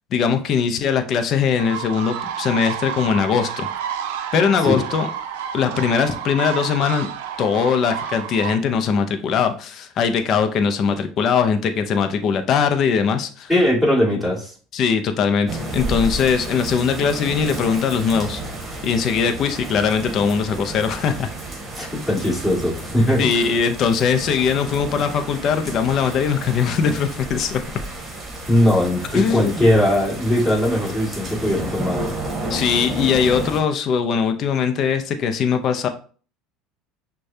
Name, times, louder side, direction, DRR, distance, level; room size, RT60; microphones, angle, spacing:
voice 1, 0.1-3.7 4.3-5.1 5.5-7.1 7.4-13.5 14.7-18.4 18.8-21.3 23.2-27.6 29.1-29.6 32.5-35.9, left 6 dB, 45° left, 7 dB, 0.6 m, -20 dB
sound 1, 1.6-8.6, right 8 dB, 80° right, 0.4 m, -30 dB
voice 2, 13.5-14.5 21.7-23.5 28.5-32.0, left 1 dB, 5° left, -6 dB, 2.2 m, -19 dB
sound 2, 15.5-33.6, right 2 dB, 25° right, 1.4 m, -31 dB
6.2 x 2.3 x 2.7 m, 0.40 s
supercardioid pair, 110°, 0 cm